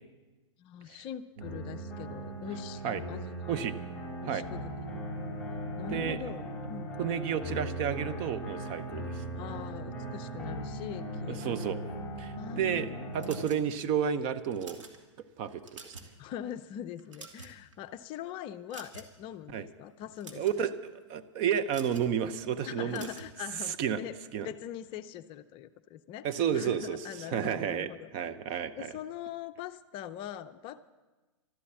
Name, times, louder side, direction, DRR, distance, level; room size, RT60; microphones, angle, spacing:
voice 1, 0.6-3.6 4.2-5.0 5.5-6.9 9.3-11.8 12.3-13.1 16.2-20.4 22.6-24.2 24.4-28.1 28.8-30.8, left 10 dB, 35° left, 11 dB, 0.5 m, -42 dB
sound 1, 1.4-13.4, left 1 dB, 5° left, 4.7 m, -40 dB
sound 2, 1.4-13.5, right 7 dB, 70° right, 0.7 m, -43 dB
voice 2, 7.0-9.2 11.3-11.8 12.2-12.9 13.1-14.8 15.4-15.9 19.5-19.7 20.4-23.1 23.8-24.0 24.3-24.5 26.2-27.0 27.3-27.9 28.1-28.9, right 8 dB, 40° right, 11 dB, 0.8 m, -31 dB
sound 3, 13.2-13.9 14.4-15.0 15.5-16.2 16.5-16.6 17.0-17.7 18.7-19.2 20.0-20.6 21.7-22.1 22.9-23.3, right 4 dB, 85° right, 2.0 m, -48 dB
13.0 x 12.5 x 7.2 m, 1.2 s
hypercardioid pair, 115°, 16 cm